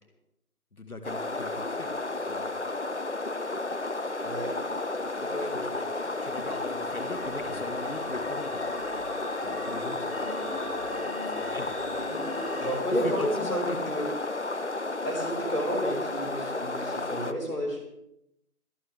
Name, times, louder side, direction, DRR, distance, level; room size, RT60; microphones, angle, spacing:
voice 1, 0.7-1.9 2.3-2.5 5.4-5.5 6.2-8.6 9.4-10.1 11.3-11.7 13.0-13.8, left 2 dB, 65° left, 8 dB, 1.9 m, -39 dB
sound 1, 1.0-17.3, left 2 dB, 50° left, 0.7 m, -32 dB
sound 2, 3.4-12.7, left 1 dB, 20° left, 2.9 m, -42 dB
voice 2, 4.2-4.5 5.2-5.6 10.3-10.4 12.6-14.1 15.0-17.8, equal, 85° left, 0 dB, 5.9 m, -31 dB
27.0 x 10.5 x 3.5 m, 0.79 s
figure-of-eight pair, 165°, 46 cm